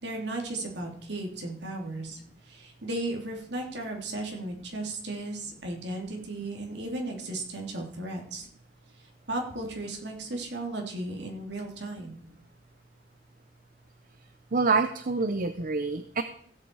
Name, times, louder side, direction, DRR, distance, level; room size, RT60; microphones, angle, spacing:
voice 1, 0.0-8.5 9.3-12.2, right 2 dB, 65° right, 1 dB, 3.1 m, -35 dB
voice 2, 14.5-16.2, right 4 dB, 50° right, 10 dB, 0.7 m, -26 dB
16.0 x 8.1 x 4.7 m, 0.62 s
head